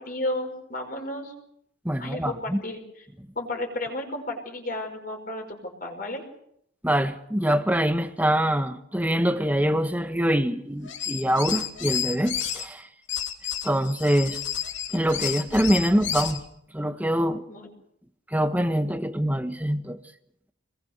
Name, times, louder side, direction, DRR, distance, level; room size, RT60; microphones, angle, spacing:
voice 1, 0.0-1.3 2.0-2.8 3.4-6.2 17.5-17.7, left 1 dB, 45° left, 5.5 m, -33 dB
voice 2, 1.8-2.6 6.8-12.9 13.6-14.4 14.9-16.4 16.7-17.4 18.3-20.0, equal, 10° right, 1.3 m, -24 dB
sound 1, 10.8-12.6 13.1-16.4, left 9 dB, 65° left, 3.0 m, -31 dB
28.0 x 21.5 x 6.7 m
head